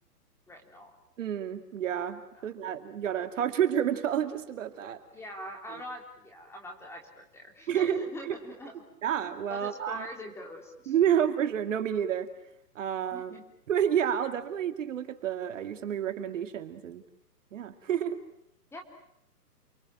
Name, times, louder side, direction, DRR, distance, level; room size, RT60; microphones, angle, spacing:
voice 1, 0.5-0.9 2.3-2.5 5.1-8.7 9.5-10.9 13.1-13.4 18.7-18.8, left 1 dB, 5° left, 3 dB, 3.4 m, -43 dB
voice 2, 1.2-5.0 5.7-5.8 7.7-8.3 9.0-10.1 10.9-12.3 12.8-13.4 13.7-17.0 17.5-18.2, right 9 dB, 50° right, 8 dB, 2.5 m, -29 dB
29.5 x 23.5 x 7.7 m, 0.76 s
hypercardioid pair, 155°, 48 cm